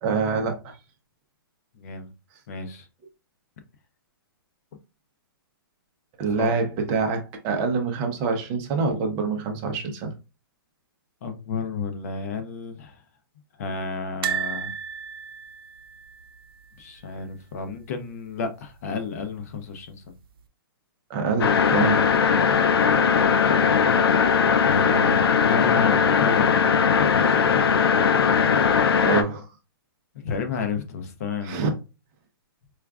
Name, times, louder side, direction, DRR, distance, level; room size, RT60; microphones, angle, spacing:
voice 1, 0.0-0.8 6.2-10.1 21.1-22.0 22.4-22.5 29.0-29.5 31.4-31.7, right 4 dB, 25° right, 0.6 m, -26 dB
voice 2, 1.7-2.1 2.5-2.9 6.3-6.6 11.2-13.0 13.6-14.7 16.8-20.1 22.5-22.7 24.2-26.6 27.0-27.6 30.1-31.6, left 5 dB, 40° left, 0.6 m, -32 dB
sound 1, 14.2-17.3 17.5-17.7 18.0-18.1 19.3-19.9 20.4-20.5, right 8 dB, 75° right, 0.6 m, -33 dB
sound 2, 21.4-29.2, left 6 dB, 90° left, 0.5 m, -19 dB
4.5 x 2.4 x 2.3 m
hypercardioid pair, 160°, 12 cm